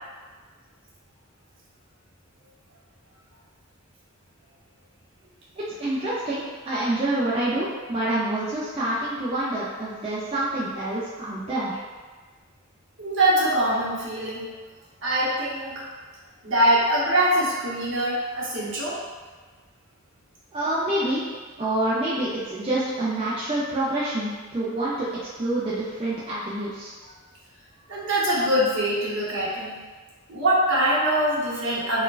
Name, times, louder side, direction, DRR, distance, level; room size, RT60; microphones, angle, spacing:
voice 1, 5.6-11.8 20.5-21.2 21.6-25.1 25.4-26.9, right 1 dB, 25° right, -9 dB, 0.4 m, -27 dB
voice 2, 13.0-14.4 15.0-15.9 16.4-19.0 27.9-29.7 30.3-32.0, right 1 dB, 60° right, -6 dB, 0.8 m, -23 dB
4.3 x 2.1 x 2.3 m, 1.4 s
head